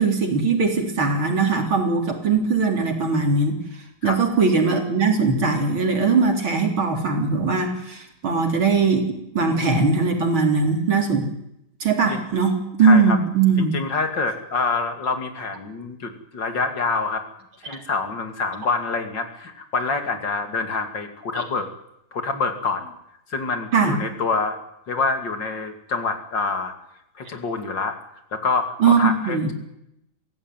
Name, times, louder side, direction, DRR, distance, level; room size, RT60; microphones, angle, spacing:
voice 1, 0.0-3.6 4.0-9.1 9.3-11.3 11.8-13.8 17.6-17.8 21.4-21.5 23.7-24.0 28.8-29.5, right 4 dB, 90° right, 3 dB, 4.4 m, -20 dB
voice 2, 12.8-13.2 13.7-17.3 17.6-21.7 22.1-22.9 23.3-24.6 24.9-26.7 27.2-28.0 28.3-29.5, left 4 dB, 65° left, 6 dB, 3.2 m, -26 dB
24.0 x 16.0 x 9.2 m, 0.81 s
omnidirectional pair, 2.2 m